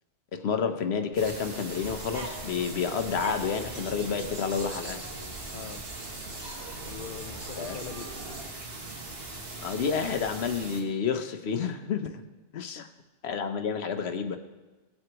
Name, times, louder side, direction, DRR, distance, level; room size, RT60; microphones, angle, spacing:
voice 1, 0.3-5.0 7.6-7.8 9.6-12.2 12.5-12.9 13.2-14.4, left 6 dB, 80° left, 8 dB, 1.1 m, -30 dB
sound 1, 1.2-10.8, right 2 dB, 65° right, 1.6 m, -40 dB
sound 2, 1.8-8.5, right 1 dB, 30° right, 1.2 m, -46 dB
voice 2, 6.9-8.1 12.0-12.1 12.5-12.8, left 8 dB, 60° left, 10 dB, 0.6 m, -42 dB
18.0 x 7.9 x 3.0 m, 1.3 s
omnidirectional pair, 1.1 m